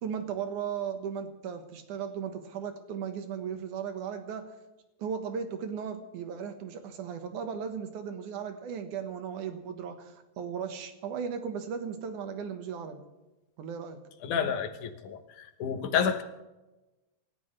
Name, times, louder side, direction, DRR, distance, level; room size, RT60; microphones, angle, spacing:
voice 1, 0.0-4.5 5.0-13.0 13.6-14.0, right 7 dB, 80° right, 7 dB, 2.9 m, -36 dB
voice 2, 14.2-16.2, left 7 dB, 85° left, 8 dB, 2.6 m, -30 dB
27.5 x 13.5 x 3.3 m, 1.0 s
omnidirectional pair, 3.5 m